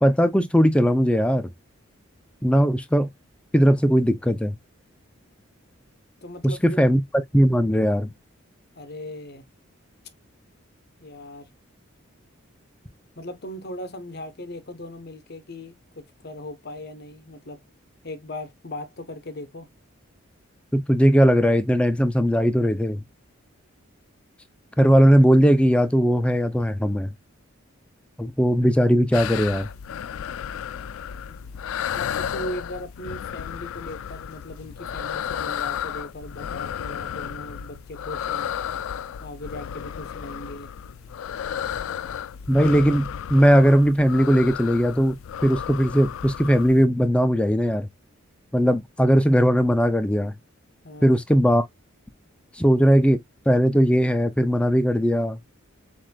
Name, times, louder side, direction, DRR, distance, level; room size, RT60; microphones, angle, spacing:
voice 1, 0.0-1.5 2.4-3.1 3.5-4.6 6.4-7.0 7.3-8.1 20.7-23.0 24.8-27.1 28.2-29.7 42.5-47.9 48.5-50.4 51.0-51.7 52.5-53.2 53.5-55.4, equal, 5° left, 0.3 m, -19 dB
voice 2, 6.2-6.8 8.7-9.4 11.0-11.5 13.1-17.6 18.0-19.7 31.3-31.4 31.9-38.5 39.2-40.7 50.8-51.2, left 1 dB, 50° left, 0.9 m, -38 dB
sound 1, 29.1-46.8, left 9 dB, 80° left, 0.3 m, -33 dB
7.4 x 2.5 x 2.2 m
head